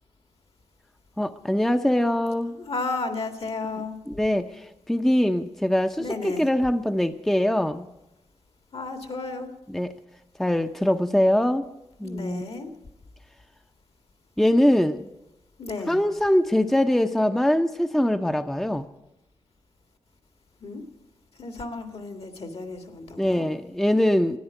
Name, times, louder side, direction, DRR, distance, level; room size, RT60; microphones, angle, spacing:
voice 1, 1.2-2.6 4.1-7.9 9.7-9.9 10.4-11.7 12.0-12.4 14.4-15.1 15.9-18.9 23.2-24.4, left 1 dB, 5° left, 7 dB, 0.7 m, -23 dB
voice 2, 2.5-4.0 6.0-6.5 8.7-9.5 12.0-12.7 15.6-16.0 20.6-20.8 21.4-23.5, left 3 dB, 60° left, 7 dB, 2.0 m, -33 dB
13.5 x 10.0 x 8.2 m, 0.90 s
cardioid pair, 60°, 11 cm